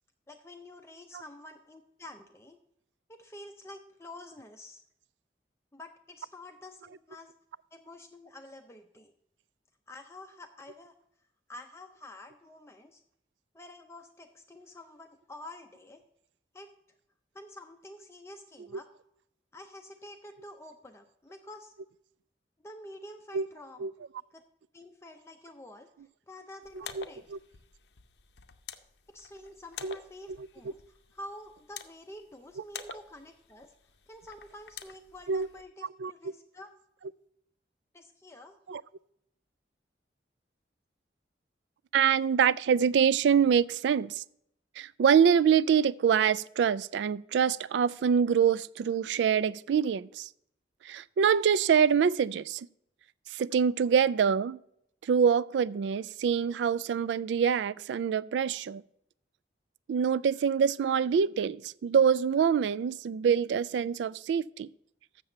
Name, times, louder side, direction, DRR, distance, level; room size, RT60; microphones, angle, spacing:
voice 1, 0.3-2.6 3.1-4.8 5.7-7.3 7.7-9.1 9.9-11.0 11.5-13.0 13.5-16.0 16.5-16.7 17.3-18.9 19.5-21.7 22.6-23.9 24.3-24.4 24.7-25.9 26.3-27.3 29.1-33.7 34.1-36.7 37.9-38.6, left 1 dB, 15° left, 0.5 m, -48 dB
sound 1, 26.6-35.6, left 7 dB, 70° left, 0.6 m, -49 dB
voice 2, 26.8-27.4 29.8-30.0 30.3-30.5 35.3-35.5 35.8-36.1 38.7-38.8 41.9-44.2 44.8-50.3 50.8-52.7 53.3-54.6 55.0-58.8 59.9-64.7, right 7 dB, 75° right, 0.3 m, -25 dB
7.4 x 6.8 x 6.5 m
head